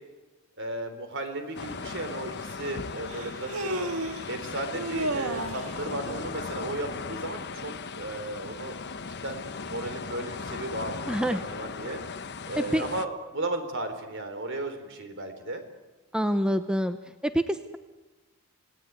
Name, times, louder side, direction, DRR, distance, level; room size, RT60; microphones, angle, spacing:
voice 1, 0.6-3.9 4.3-8.7 9.2-12.0 12.5-15.6, right 2 dB, 60° right, 8 dB, 3.8 m, -35 dB
sound 1, 1.5-13.1, left 4 dB, 50° left, 1.1 m, -38 dB
Human voice, 1.7-1.8 3.1-4.3 4.7-5.7, right 1 dB, 85° right, 1.9 m, -32 dB
voice 2, 11.1-11.4 12.6-12.9 16.1-17.0 17.2-17.8, equal, 5° right, 9 dB, 0.8 m, -26 dB
29.5 x 17.5 x 9.6 m, 1.2 s
head